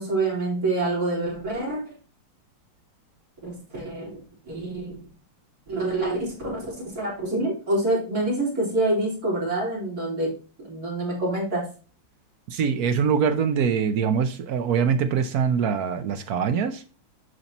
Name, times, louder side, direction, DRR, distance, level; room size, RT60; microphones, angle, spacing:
voice 1, 0.0-1.9 3.4-4.2 4.5-5.0 5.7-10.3 10.6-11.7, right 2 dB, 45° right, 4.1 m, -26 dB
voice 2, 12.5-16.8, right 6 dB, 65° right, 1.0 m, -23 dB
8.1 x 5.7 x 2.9 m
omnidirectional pair, 2.1 m